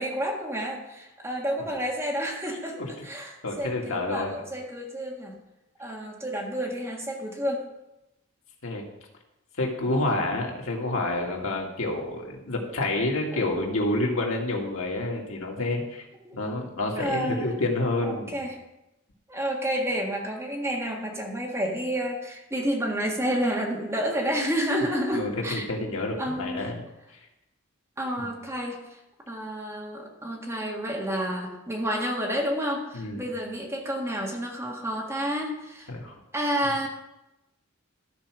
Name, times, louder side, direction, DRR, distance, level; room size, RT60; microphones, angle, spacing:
voice 1, 0.0-5.4 5.8-7.7 13.3-13.4 16.2-16.4 17.0-17.5 18.0-18.6 19.3-25.7 26.2-26.7 28.0-29.0 29.3-35.9 36.3-36.9, equal, 15° right, -1 dB, 1.7 m, -30 dB
voice 2, 3.4-4.3 8.6-8.8 9.6-16.0 16.3-18.4 25.1-26.8 28.2-28.3 32.9-33.2 35.9-36.1, left 2 dB, 85° left, 0 dB, 2.0 m, -28 dB
13.5 x 4.6 x 6.1 m, 0.94 s
head